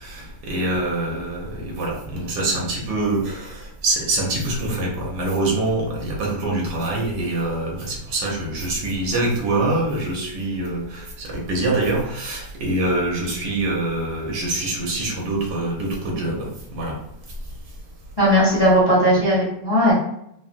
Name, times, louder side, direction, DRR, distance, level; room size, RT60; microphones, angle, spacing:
voice 1, 0.0-17.0, right 2 dB, 70° right, -2 dB, 1.4 m, -25 dB
voice 2, 18.2-19.9, equal, 20° left, -7 dB, 0.6 m, -17 dB
3.9 x 2.0 x 2.5 m, 0.75 s
omnidirectional pair, 1.8 m